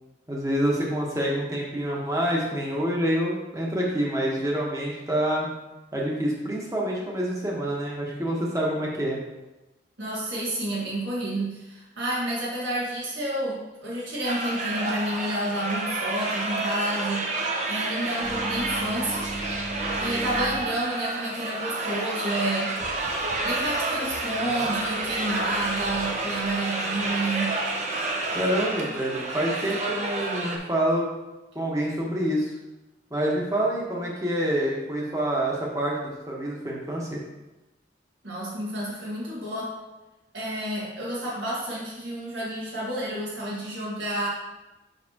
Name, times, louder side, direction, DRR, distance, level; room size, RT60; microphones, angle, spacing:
voice 1, 0.3-5.5 5.9-9.2 28.3-31.1 31.5-32.5 33.1-37.2, right 1 dB, 15° right, -3 dB, 1.2 m, -27 dB
voice 2, 10.0-19.2 20.0-22.7 23.4-27.6 38.2-39.8 40.3-44.3, right 1 dB, 75° right, -6 dB, 1.7 m, -30 dB
sound 1, 14.2-30.6, right 2 dB, 40° right, 0.7 m, -29 dB
sound 2, 18.2-20.8 22.8-26.4, right 1 dB, 5° left, 0.7 m, -39 dB
6.6 x 5.7 x 2.9 m, 1.0 s
head